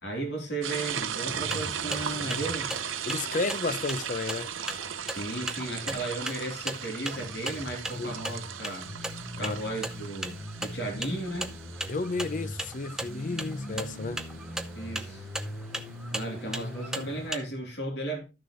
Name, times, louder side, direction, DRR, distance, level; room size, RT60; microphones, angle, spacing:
voice 1, 0.0-2.7 5.0-8.9 9.4-11.6 14.7-15.3 16.1-18.2, right 1 dB, 60° left, 3.1 m, -35 dB
sound 1, 0.6-15.0, right 8 dB, 85° right, 0.8 m, -37 dB
sound 2, 0.8-17.3, equal, 25° left, 5.7 m, -43 dB
sound 3, 1.3-17.4, right 1 dB, 5° right, 0.6 m, -39 dB
voice 2, 3.0-4.5 8.0-8.1 9.4-9.7 11.9-14.2, left 3 dB, 40° left, 0.5 m, -32 dB
13.0 x 6.5 x 3.1 m
head